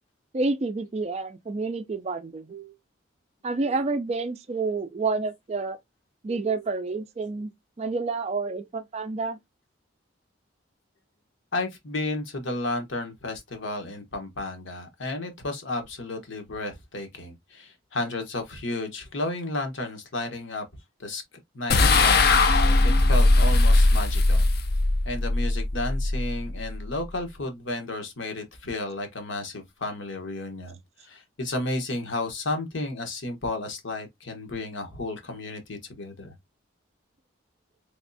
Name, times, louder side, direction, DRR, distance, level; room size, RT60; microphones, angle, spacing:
voice 1, 0.3-2.7 3.4-5.8 6.2-7.5 7.8-9.4, right 3 dB, 30° right, 0.3 m, -29 dB
voice 2, 11.5-20.6 21.0-21.2 21.5-24.4 25.0-36.3, left 2 dB, 70° left, 1.0 m, -32 dB
sound 1, 21.7-27.1, left 2 dB, 50° left, 0.5 m, -20 dB
3.5 x 3.1 x 2.6 m
head